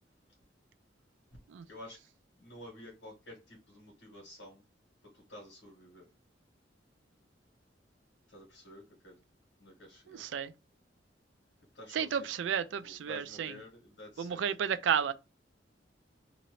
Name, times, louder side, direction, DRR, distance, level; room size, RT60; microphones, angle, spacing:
voice 1, 2.4-4.6 5.0-6.1 8.3-9.2 9.6-10.3 11.7-12.3 12.8-14.4, left 1 dB, 85° left, 1.6 m, -50 dB
voice 2, 10.2-10.5 11.9-13.5 14.2-15.1, right 8 dB, 75° right, 0.3 m, -32 dB
2.9 x 2.8 x 3.0 m
head